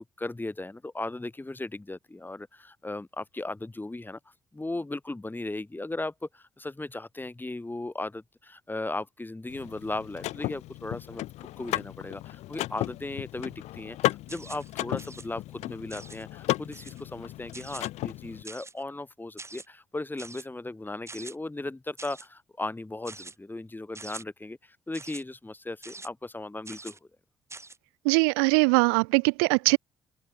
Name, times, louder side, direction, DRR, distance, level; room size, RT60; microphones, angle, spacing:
voice 1, 0.0-4.2 4.5-27.0, left 2 dB, 15° left, 4.3 m, -37 dB
Car / Mechanisms, 9.5-18.4, left 16 dB, 55° left, 0.6 m, -34 dB
sound 1, 14.3-14.7 15.0-15.3 15.9-16.2 16.7-17.0 17.5-17.9 18.4-18.8 19.4-19.7 20.2-20.5 21.1-21.3 22.0-22.3 23.0-23.3 23.9-24.2 24.9-25.2 25.8-26.1 26.6-27.0 27.5-27.8, right 3 dB, 20° right, 4.6 m, -44 dB
voice 2, 28.0-29.8, right 35 dB, 65° right, 0.4 m, -21 dB
figure-of-eight pair, 45°, 13 cm